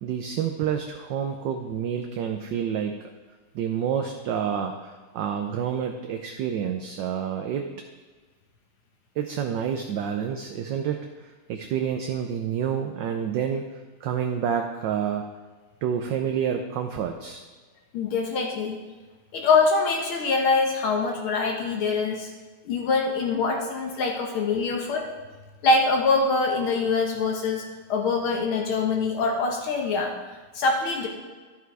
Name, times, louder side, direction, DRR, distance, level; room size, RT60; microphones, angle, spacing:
voice 1, 0.0-3.0 3.5-7.7 9.2-13.6 14.0-15.3 15.8-17.4, right 8 dB, 70° right, 5 dB, 1.1 m, -28 dB
voice 2, 17.9-18.8 19.3-22.3 22.7-25.1 25.6-27.6 27.9-30.1 30.5-31.1, left 4 dB, 75° left, 1 dB, 1.8 m, -24 dB
11.5 x 5.7 x 4.8 m, 1.4 s
omnidirectional pair, 2.4 m